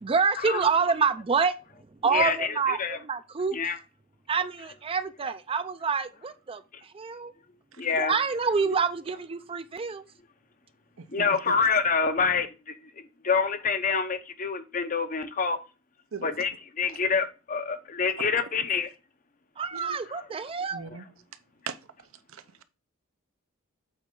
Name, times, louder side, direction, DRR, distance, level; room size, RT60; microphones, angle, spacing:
voice 1, 0.0-1.5 2.0-3.6 4.3-7.3 7.9-10.1 19.6-20.8, right 5 dB, 25° right, 0.4 m, -27 dB
voice 2, 2.1-3.0 3.5-3.8 7.8-8.2 11.1-12.7 13.2-15.6 16.2-18.9 20.2-20.3, left 5 dB, 40° left, 0.7 m, -27 dB
voice 3, 11.0-11.6 16.1-16.3 18.2-18.3 19.7-20.0 20.7-21.0 21.7-21.8 22.3-22.6, right 5 dB, 75° right, 0.7 m, -39 dB
7.9 x 4.3 x 3.7 m
head